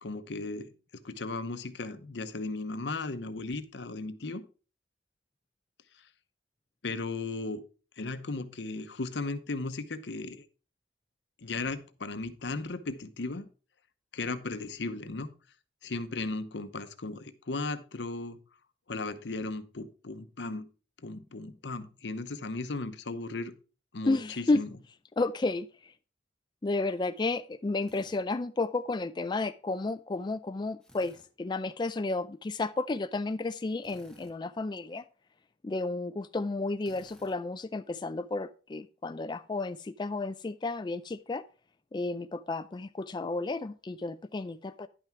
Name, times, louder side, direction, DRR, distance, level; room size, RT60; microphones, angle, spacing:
voice 1, 0.0-4.4 6.8-7.6 8.0-10.4 11.4-13.5 14.1-15.3 15.8-18.4 18.9-20.7 21.0-23.5 23.9-24.7, left 3 dB, 80° left, 0.9 m, -36 dB
voice 2, 24.1-24.6 25.2-25.7 26.6-35.0 35.6-41.4 41.9-44.9, left 3 dB, 25° left, 0.4 m, -32 dB
Drill, 27.8-28.2 30.8-31.3 33.8-34.4 36.8-37.4, left 1 dB, 5° left, 1.3 m, -57 dB
10.5 x 5.8 x 4.5 m
head